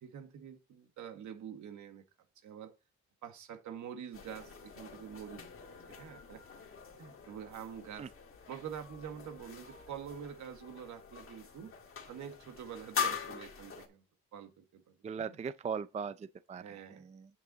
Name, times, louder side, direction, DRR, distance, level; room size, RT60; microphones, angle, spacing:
voice 1, 0.0-2.0 2.4-2.7 3.2-5.4 5.9-6.4 7.0-8.1 8.5-11.7 12.1-14.0 14.3-15.4 16.5-17.1, right 8 dB, 75° right, 1.7 m, -46 dB
sound 1, 4.1-13.9, left 7 dB, 45° left, 2.0 m, -43 dB
voice 2, 15.0-17.3, right 6 dB, 25° right, 0.4 m, -39 dB
8.5 x 6.7 x 3.9 m
cardioid pair, 90°, 30 cm